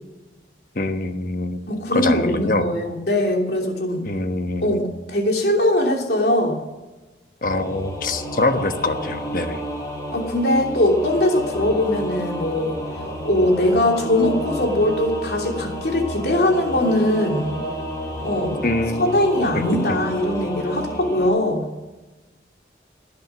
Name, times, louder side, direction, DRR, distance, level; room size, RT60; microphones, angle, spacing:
voice 1, 0.7-1.6 1.9-2.7 4.1-4.9 7.4-9.6 18.6-19.2, left 2 dB, 50° left, 7 dB, 1.2 m, -24 dB
voice 2, 1.7-4.1 4.6-6.6 10.1-17.5 18.2-18.6 19.0-21.7, left 1 dB, 65° left, 1 dB, 3.0 m, -21 dB
Singing / Musical instrument, 7.4-21.3, equal, 20° left, 3.6 m, -31 dB
19.5 x 10.5 x 6.2 m, 1.1 s
head